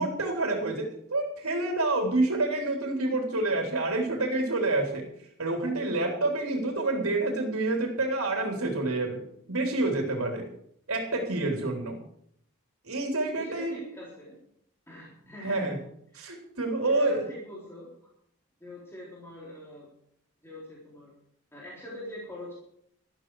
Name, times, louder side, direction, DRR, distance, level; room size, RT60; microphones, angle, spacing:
voice 1, 0.0-5.1 5.4-9.2 9.5-10.5 10.9-12.0 12.8-13.8 15.4-15.8 16.2-17.2, right 2 dB, 75° right, 2 dB, 3.6 m, -28 dB
voice 2, 13.3-14.4 14.9-15.8 16.1-16.3 16.8-17.9 18.6-19.9 20.4-21.1 21.5-22.6, left 1 dB, 10° left, -5 dB, 3.9 m, -43 dB
13.5 x 13.0 x 4.9 m, 0.68 s
head